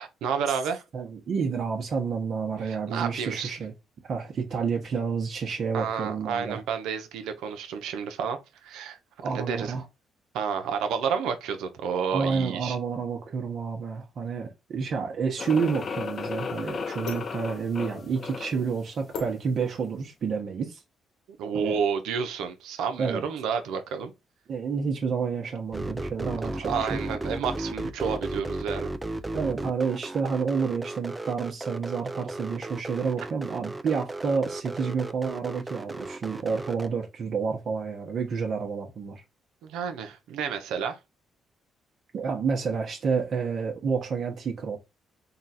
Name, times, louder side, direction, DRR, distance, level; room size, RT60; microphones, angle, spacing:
voice 1, 0.0-0.8 2.6-3.6 5.7-9.0 9.3-9.7 10.3-12.8 21.4-24.1 26.6-28.9 39.6-41.0, right 6 dB, 90° right, 0.7 m, -30 dB
voice 2, 0.9-3.7 4.1-6.6 9.2-9.8 12.1-20.8 21.5-21.8 23.0-23.2 24.5-27.0 29.3-39.2 42.1-44.8, right 5 dB, 60° right, 1.0 m, -29 dB
sound 1, 15.4-18.7, left 5 dB, 45° left, 0.5 m, -35 dB
sound 2, 17.0-20.2, left 4 dB, 80° left, 1.4 m, -43 dB
sound 3, 25.7-36.9, right 2 dB, 15° right, 0.5 m, -35 dB
3.9 x 2.4 x 4.1 m
cardioid pair, 90°, 0 cm